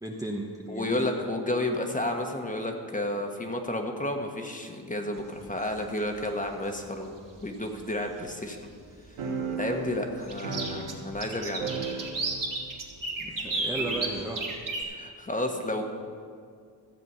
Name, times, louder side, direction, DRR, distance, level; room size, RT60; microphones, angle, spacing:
voice 1, 0.0-1.1 13.2-14.4 14.8-14.9, right 1 dB, 10° right, 0 dB, 0.9 m, -35 dB
voice 2, 0.7-7.1 7.4-8.6 9.6-12.1 14.9-15.8, left 1 dB, 15° left, 3 dB, 1.3 m, -31 dB
sound 1, 5.5-5.8 7.4-7.5 7.9-8.0 10.3-14.8, right 3 dB, 45° right, 2.3 m, -32 dB
sound 2, 9.2-11.3 11.6-12.6 12.8-12.9 13.8-14.6, right 5 dB, 90° right, 1.7 m, -35 dB
14.0 x 7.4 x 5.6 m, 2.2 s
cardioid pair, 80°, 44 cm